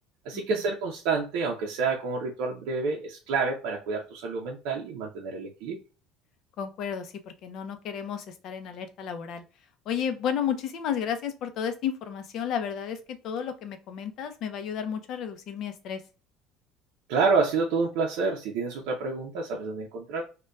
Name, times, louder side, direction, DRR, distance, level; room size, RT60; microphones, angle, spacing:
voice 1, 0.3-5.8 17.1-20.2, right 4 dB, 80° right, 0.5 m, -28 dB
voice 2, 6.6-9.4 9.9-16.0, left 8 dB, 50° left, 0.5 m, -32 dB
5.1 x 2.2 x 2.2 m
cardioid pair, 165°, 0 cm